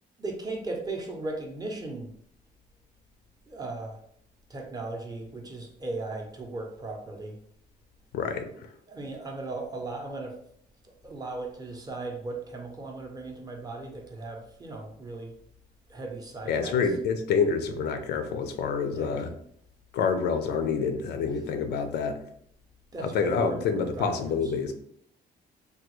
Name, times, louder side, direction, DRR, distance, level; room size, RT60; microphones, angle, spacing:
voice 1, 0.2-2.1 3.5-4.0 4.5-7.4 8.9-10.4 10.8-15.3 15.9-16.8 18.9-19.2 22.9-24.5, right 2 dB, 25° right, 2 dB, 0.5 m, -37 dB
voice 2, 8.1-8.7 16.5-19.3 19.9-22.2 23.0-24.8, left 5 dB, 85° left, 7 dB, 0.5 m, -27 dB
3.5 x 2.2 x 3.0 m, 0.67 s
cardioid pair, 135°, 17 cm